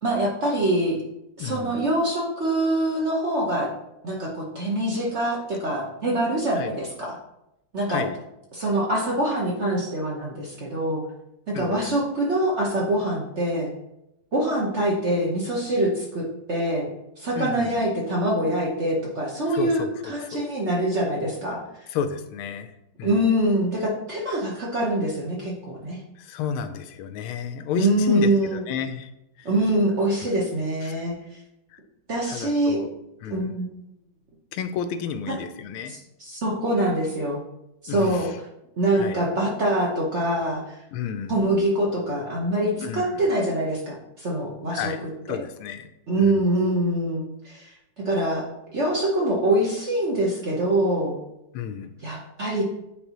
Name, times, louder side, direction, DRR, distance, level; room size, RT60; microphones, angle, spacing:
voice 1, 0.0-1.0 1.4-3.7 4.0-7.2 7.7-8.0 8.5-11.0 11.5-13.7 14.3-16.9 17.2-21.9 23.0-26.0 27.8-28.6 29.4-31.2 32.1-32.8 33.3-33.7 35.3-35.4 35.9-37.4 37.8-38.3 38.8-40.8 41.3-44.9 45.3-45.4 46.1-48.5 48.7-51.2 52.0-52.6, right 1 dB, 45° right, -3 dB, 1.0 m, -24 dB
voice 2, 1.4-1.9 6.6-6.7 7.9-8.2 11.5-12.0 17.4-17.9 19.5-19.9 20.2-20.5 21.9-22.7 23.0-23.2 26.2-29.1 29.4-29.5 30.8-31.0 31.7-31.8 32.3-32.9 33.2-33.5 34.5-36.0 37.9-38.4 39.0-39.2 40.9-41.4 42.8-43.2 44.7-45.0 45.3-45.9 46.2-46.4 51.5-51.9, left 7 dB, 90° left, 9 dB, 1.5 m, -31 dB
8.9 x 3.9 x 3.0 m, 0.86 s
omnidirectional pair, 2.3 m